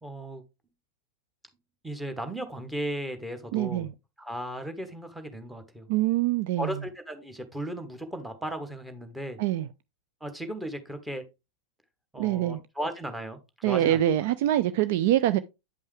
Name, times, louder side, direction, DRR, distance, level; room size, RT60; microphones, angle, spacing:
voice 1, 0.0-0.4 1.8-3.9 4.2-5.9 6.6-9.4 10.2-11.2 12.1-14.0, right 1 dB, 5° right, 1.2 m, -36 dB
voice 2, 3.5-3.9 5.9-6.7 9.4-9.7 12.2-12.6 13.6-15.4, right 13 dB, 50° right, 0.4 m, -24 dB
9.0 x 5.4 x 3.3 m
figure-of-eight pair, 90°, 0 cm